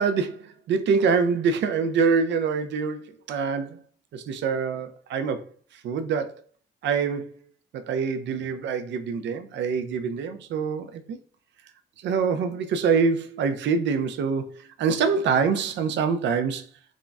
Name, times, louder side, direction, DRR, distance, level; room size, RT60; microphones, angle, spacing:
voice 1, 0.0-3.8 4.1-5.4 5.8-6.3 6.8-7.4 7.7-11.2 12.0-16.7, right 5 dB, 65° right, 0.4 m, -25 dB
3.7 x 2.0 x 2.3 m
cardioid pair, 90°, 20 cm